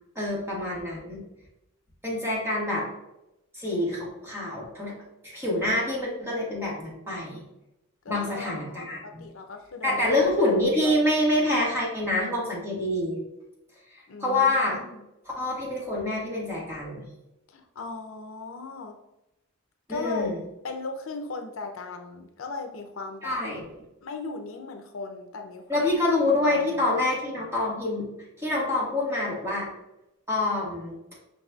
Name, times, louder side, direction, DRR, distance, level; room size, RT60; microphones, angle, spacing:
voice 1, 0.1-1.2 2.0-2.9 3.5-4.9 5.2-7.4 8.1-9.2 9.8-13.2 13.9-14.8 15.4-17.0 19.9-20.4 23.2-23.6 25.7-28.1 28.4-29.7 30.3-31.0, left 1 dB, 10° right, -5 dB, 1.5 m, -26 dB
voice 2, 8.0-10.3 14.1-15.1 17.5-18.9 19.9-20.3 20.6-23.4 24.0-25.9 26.4-27.0, left 3 dB, 70° left, 5 dB, 0.6 m, -38 dB
5.4 x 4.0 x 2.3 m, 0.91 s
head